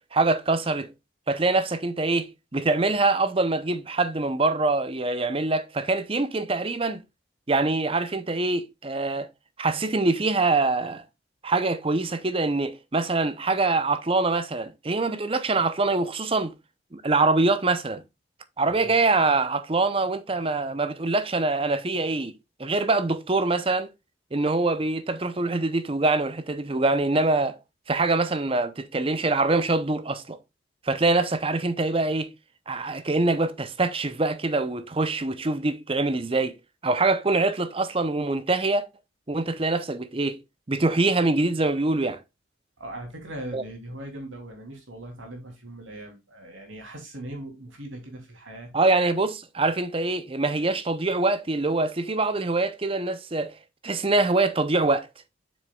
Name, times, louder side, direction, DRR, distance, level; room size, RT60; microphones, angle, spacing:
voice 1, 0.1-0.9 1.3-7.0 7.5-9.3 9.6-11.0 11.4-16.5 16.9-18.0 18.6-22.3 22.6-23.9 24.3-27.6 27.9-30.4 30.9-32.3 32.7-36.5 36.8-38.9 39.3-40.4 40.7-42.2 43.5-43.6 48.7-53.5 53.8-55.1, right 3 dB, 30° right, 0.6 m, -24 dB
voice 2, 42.8-48.7, right 1 dB, 85° right, 3.0 m, -40 dB
7.5 x 6.3 x 2.3 m
head